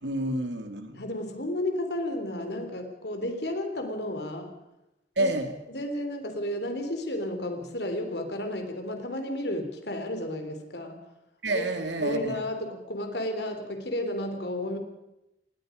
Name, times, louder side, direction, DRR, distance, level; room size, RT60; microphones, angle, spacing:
voice 1, 0.0-1.0 5.2-5.5 11.4-12.4, right 2 dB, 85° right, 7 dB, 2.7 m, -28 dB
voice 2, 0.9-4.6 5.2-5.3 5.7-11.0 11.5-11.6 12.0-14.8, left 1 dB, 65° left, 6 dB, 3.5 m, -32 dB
27.5 x 20.0 x 5.2 m, 0.92 s
head